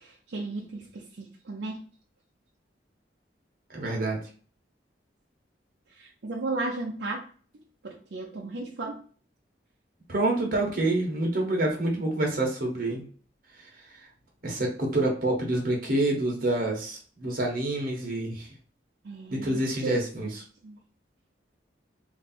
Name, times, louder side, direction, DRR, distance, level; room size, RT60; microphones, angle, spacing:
voice 1, 0.3-1.0 1.5-1.8 6.0-7.2 7.8-9.0 19.1-20.0 20.6-20.8, right 2 dB, 80° right, -1 dB, 0.6 m, -34 dB
voice 2, 3.7-4.2 10.1-13.0 13.6-13.7 14.4-18.5 19.3-20.4, right 2 dB, 55° right, 0 dB, 1.1 m, -27 dB
3.2 x 2.7 x 4.2 m, 0.43 s
head